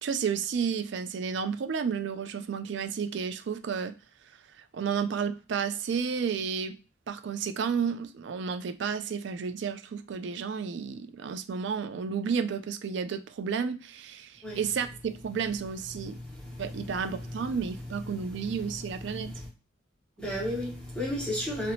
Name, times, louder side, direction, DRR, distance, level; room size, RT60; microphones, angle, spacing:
voice 1, 0.0-3.9 4.6-6.8 7.1-16.2 16.6-19.3, right 6 dB, 65° right, 0.3 m, -32 dB
voice 2, 16.0-16.9 17.2-17.4 18.3-18.5 19.1-19.5 20.2-21.7, equal, 5° left, 0.8 m, -34 dB
2.9 x 2.0 x 2.7 m
head